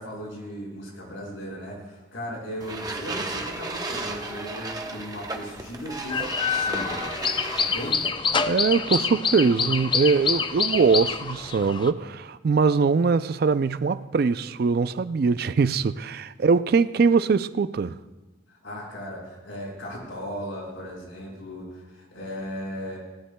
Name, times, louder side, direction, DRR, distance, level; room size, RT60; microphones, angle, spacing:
voice 1, 0.0-7.0 7.6-8.0 18.5-23.0, equal, 85° left, 5.6 m, -37 dB
sound 1, 2.6-8.1, right 2 dB, 20° right, 0.8 m, -34 dB
sound 2, 6.1-11.9, left 5 dB, 25° left, 0.4 m, -26 dB
voice 2, 8.5-18.0, right 5 dB, 50° right, 0.3 m, -22 dB
20.0 x 17.0 x 2.2 m
head